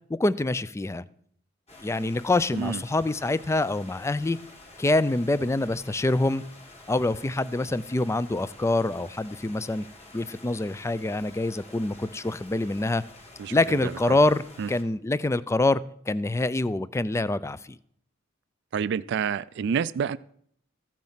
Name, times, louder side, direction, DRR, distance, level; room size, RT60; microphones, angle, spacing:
voice 1, 0.1-1.0 1.8-4.4 4.8-6.4 6.9-9.9 10.1-13.0 13.5-17.8, left 2 dB, 15° left, 17 dB, 0.4 m, -25 dB
sound 1, 1.7-14.8, left 2 dB, 35° left, 2.1 m, -49 dB
voice 2, 13.4-14.2 14.6-14.7 18.7-20.2, right 7 dB, 60° right, 16 dB, 0.3 m, -29 dB
14.5 x 7.5 x 5.7 m, 0.67 s
head